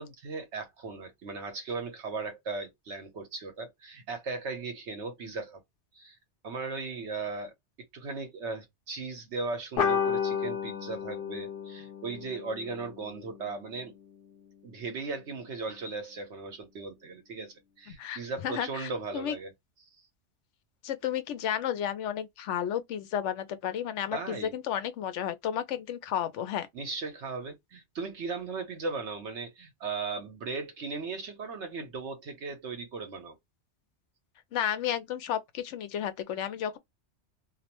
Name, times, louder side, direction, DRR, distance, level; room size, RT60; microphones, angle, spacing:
voice 1, 0.0-5.6 5.9-6.2 6.4-7.5 7.9-13.9 14.6-19.5 24.1-24.5 26.7-33.4, right 4 dB, 75° right, 1.3 m, -37 dB
sound 1, 9.8-14.7, left 7 dB, 55° left, 0.8 m, -33 dB
voice 2, 18.0-19.4 20.8-26.7 34.5-36.8, left 10 dB, 85° left, 0.9 m, -32 dB
2.8 x 2.0 x 2.9 m
omnidirectional pair, 1.2 m